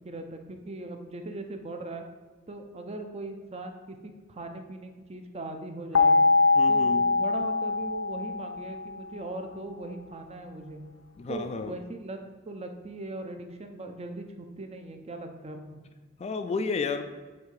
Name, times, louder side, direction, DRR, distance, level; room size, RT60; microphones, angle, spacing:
voice 1, 0.0-2.0 2.5-6.3 6.7-10.8 11.3-12.2 12.5-15.8, right 2 dB, 30° right, 5 dB, 0.6 m, -39 dB
sound 1, 5.9-8.9, left 3 dB, 75° left, 0.7 m, -23 dB
voice 2, 6.5-7.1 11.2-11.7 16.2-17.0, left 4 dB, 30° left, 8 dB, 0.3 m, -31 dB
7.8 x 2.8 x 5.2 m, 1.4 s
head